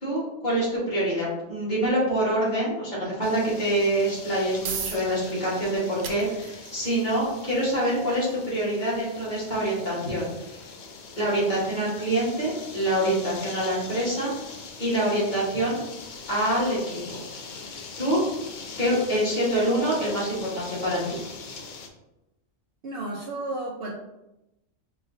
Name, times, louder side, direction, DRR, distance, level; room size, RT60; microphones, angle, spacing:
voice 1, 0.0-10.6 11.2-14.3 14.8-15.8 16.3-17.2 18.0-18.2 18.8-21.0, right 1 dB, 35° left, -7 dB, 1.6 m, -26 dB
sound 1, 3.2-21.9, left 4 dB, 65° left, 0.4 m, -42 dB
sound 2, 4.6-19.0, right 6 dB, 90° right, 1.0 m, -44 dB
voice 2, 22.8-23.9, right 2 dB, 60° right, -3 dB, 0.7 m, -32 dB
4.7 x 3.0 x 2.6 m, 0.91 s
omnidirectional pair, 1.4 m